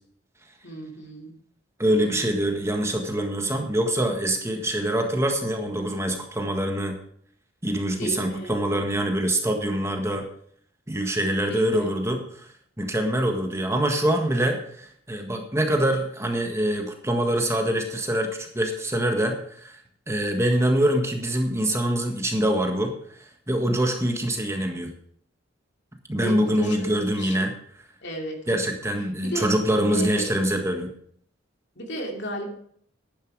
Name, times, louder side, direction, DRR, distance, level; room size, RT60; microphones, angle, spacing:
voice 1, 0.6-1.3 2.0-2.4 8.0-8.6 11.5-11.9 26.1-27.5 28.0-28.7 29.2-29.5 29.9-30.3 31.8-32.5, right 1 dB, 60° left, 2 dB, 2.8 m, -33 dB
voice 2, 1.8-7.0 7.6-10.2 10.9-12.5 12.8-19.8 20.1-22.9 23.5-24.9 26.1-27.5 28.5-30.9, right 1 dB, 15° right, 3 dB, 1.6 m, -24 dB
11.5 x 10.0 x 4.8 m, 0.62 s
head